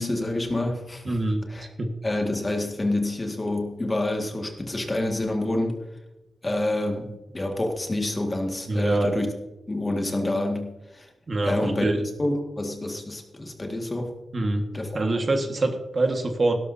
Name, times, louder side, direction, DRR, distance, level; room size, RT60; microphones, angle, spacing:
voice 1, 0.0-1.2 1.5-1.7 2.0-5.8 6.4-9.3 9.7-11.1 11.4-11.9 12.2-14.1 14.7-15.0, left 1 dB, 20° left, 2 dB, 1.8 m, -27 dB
voice 2, 1.0-1.4 1.8-1.9 8.7-9.2 11.3-12.0 14.3-14.6 14.9-16.5, right 2 dB, 35° right, 4 dB, 1.6 m, -25 dB
17.5 x 12.5 x 2.7 m, 0.99 s
wide cardioid pair, 155°, 0 cm